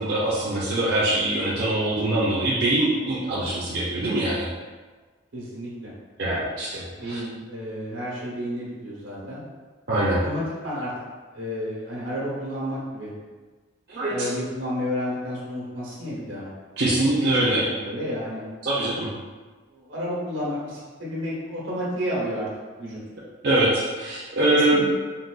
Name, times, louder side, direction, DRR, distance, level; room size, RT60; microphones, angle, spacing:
voice 1, 0.0-4.5 6.2-7.2 9.9-10.2 13.9-14.3 16.8-17.6 18.6-19.1 23.4-24.8, right 1 dB, 55° right, -8 dB, 0.5 m, -23 dB
voice 2, 5.3-5.9 7.0-9.4 10.2-10.9 11.3-13.1 14.1-16.5 16.8-17.0 17.5-18.5 19.7-22.5 22.8-23.0 24.5-24.8, equal, 85° right, -6 dB, 1.0 m, -31 dB
3.8 x 2.2 x 2.3 m, 1.4 s
head